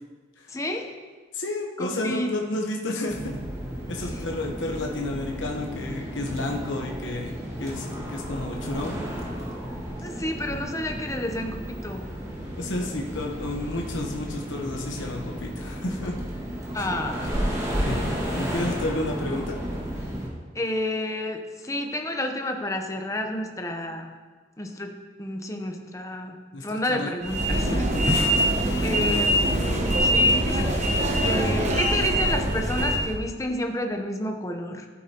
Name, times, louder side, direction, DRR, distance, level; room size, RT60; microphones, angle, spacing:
voice 1, 0.5-0.9 1.8-2.3 4.0-4.2 10.0-12.1 16.7-17.3 20.5-24.1 24.6-24.9 25.2-28.2 28.8-29.3 30.0-34.9, left 1 dB, 15° left, 4 dB, 0.8 m, -30 dB
voice 2, 1.3-3.2 3.9-9.0 12.5-16.1 16.8-16.9 17.8-19.6 26.5-27.1 27.5-28.0 28.8-28.9, left 2 dB, 85° left, 0 dB, 1.0 m, -31 dB
sound 1, 3.1-20.3, equal, 20° right, 1.8 m, -33 dB
sound 2, 27.2-33.2, equal, 40° right, 1.2 m, -23 dB
13.0 x 8.5 x 2.9 m, 1.4 s
head